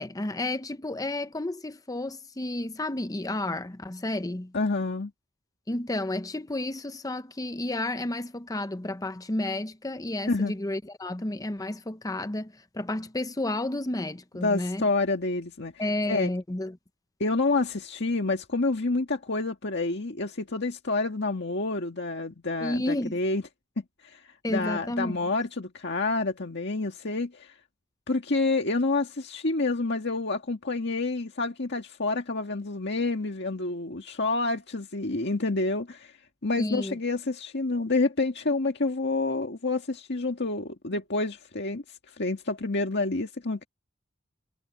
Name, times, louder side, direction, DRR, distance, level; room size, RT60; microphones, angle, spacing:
voice 1, 0.0-4.5 5.7-14.8 15.8-16.8 22.6-23.2 24.4-25.2 36.6-37.0, left 1 dB, 20° left, 0.8 m, -31 dB
voice 2, 4.5-5.1 10.3-10.5 14.4-15.7 16.1-16.3 17.2-23.4 23.8-24.2 24.5-27.5 28.1-36.2 36.4-43.7, left 3 dB, 60° left, 1.8 m, -28 dB
head